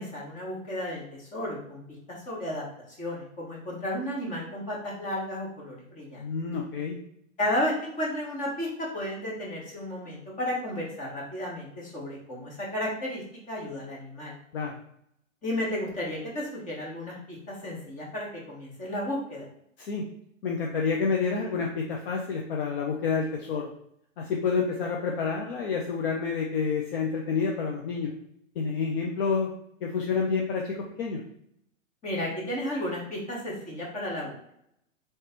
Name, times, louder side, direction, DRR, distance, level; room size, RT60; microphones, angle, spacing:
voice 1, 0.0-1.8 2.2-2.6 3.0-6.3 7.4-8.7 8.9-13.2 13.5-14.3 15.4-19.4 32.0-34.3, left 1 dB, 20° left, -4 dB, 1.4 m, -33 dB
voice 2, 6.2-7.0 14.5-14.7 19.8-20.0 20.4-23.7 24.2-28.1 28.6-29.5 29.8-31.2, left 5 dB, 45° left, 0 dB, 0.7 m, -28 dB
3.2 x 3.2 x 4.3 m, 0.74 s
hypercardioid pair, 130°, 40 cm